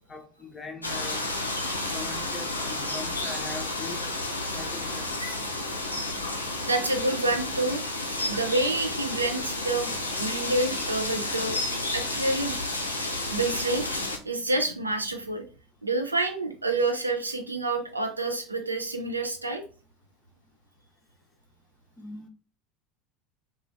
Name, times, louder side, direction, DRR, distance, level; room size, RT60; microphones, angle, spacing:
voice 1, 0.1-1.3 1.9-4.0 4.5-5.4 22.0-22.3, left 3 dB, 20° left, 0.6 m, -41 dB
sound 1, 0.8-14.2, left 2 dB, 90° left, 0.4 m, -31 dB
voice 2, 6.6-7.8 8.3-9.9 10.2-11.6 11.9-12.6 13.3-13.8 14.2-15.4 15.8-19.6, right 2 dB, 85° right, 0.4 m, -28 dB
3.0 x 2.3 x 2.5 m
figure-of-eight pair, 75°, 0 cm